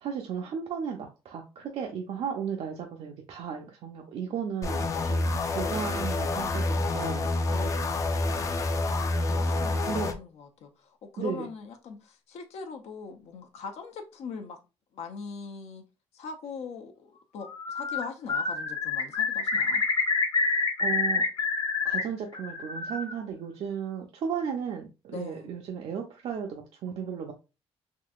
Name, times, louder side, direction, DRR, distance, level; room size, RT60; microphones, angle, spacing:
voice 1, 0.0-7.4 9.9-10.1 11.2-11.5 20.8-21.2 21.8-27.3, right 7 dB, 70° right, 0.5 m, -35 dB
sound 1, 4.6-10.1, left 2 dB, 30° left, 0.4 m, -28 dB
voice 2, 7.5-8.6 9.3-14.6 14.9-15.8 16.1-19.8 25.1-25.5, left 5 dB, 80° left, 0.6 m, -42 dB
Bird, 17.5-18.0 18.3-22.0 22.3-23.1, left 4 dB, 45° left, 0.8 m, -27 dB
3.7 x 2.7 x 2.3 m
cardioid pair, 150°, 11 cm